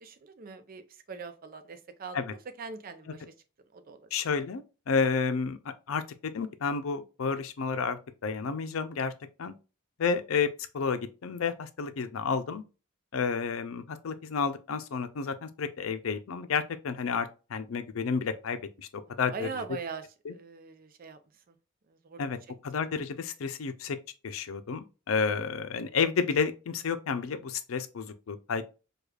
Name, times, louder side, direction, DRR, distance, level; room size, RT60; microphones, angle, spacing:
voice 1, 0.0-3.2 3.7-4.1 14.2-14.4 19.3-20.0 20.3-21.2 21.5-21.6 21.9-22.2, right 5 dB, 45° right, 0.5 m, -42 dB
voice 2, 4.1-5.6 5.9-9.1 9.4-9.5 10.0-10.5 10.7-12.6 13.1-18.9 19.2-19.6 20.2-20.3 22.2-22.4 22.6-24.0 24.2-28.6, left 5 dB, 90° left, 0.5 m, -31 dB
4.8 x 2.3 x 2.3 m
head